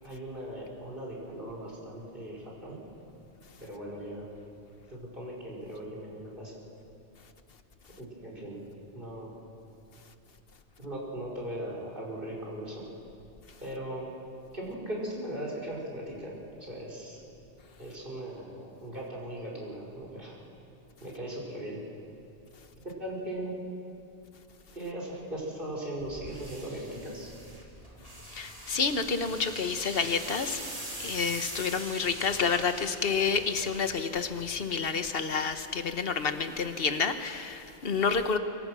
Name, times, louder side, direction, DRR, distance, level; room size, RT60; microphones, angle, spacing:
voice 1, 0.0-2.8 3.6-4.3 4.9-6.6 7.9-8.6 8.9-9.3 10.8-12.9 13.6-14.1 14.5-17.2 17.8-20.4 21.0-21.8 22.8-23.6 24.7-27.3, right 1 dB, 50° right, -3 dB, 5.2 m, -39 dB
sound 1, 26.0-34.6, right 1 dB, 30° right, 3.2 m, -43 dB
voice 2, 28.3-30.6 31.0-38.4, left 5 dB, 60° left, 9 dB, 1.4 m, -29 dB
24.0 x 23.5 x 6.3 m, 2.6 s
omnidirectional pair, 1.1 m